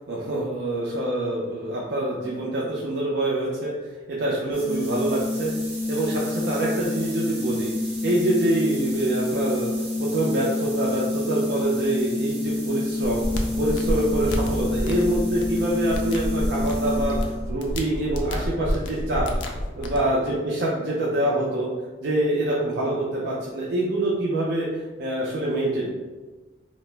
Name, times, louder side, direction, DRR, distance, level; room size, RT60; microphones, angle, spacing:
voice 1, 0.1-3.7 4.1-5.5 5.9-7.7 8.0-9.7 10.0-13.2 13.6-19.3 19.8-21.7 22.0-25.9, right 1 dB, 60° right, -5 dB, 0.4 m, -25 dB
sound 1, 4.5-17.4, left 2 dB, 30° right, 0.7 m, -28 dB
sound 2, 13.0-20.0, equal, 70° left, 0.4 m, -29 dB
2.7 x 2.0 x 3.2 m, 1.3 s
head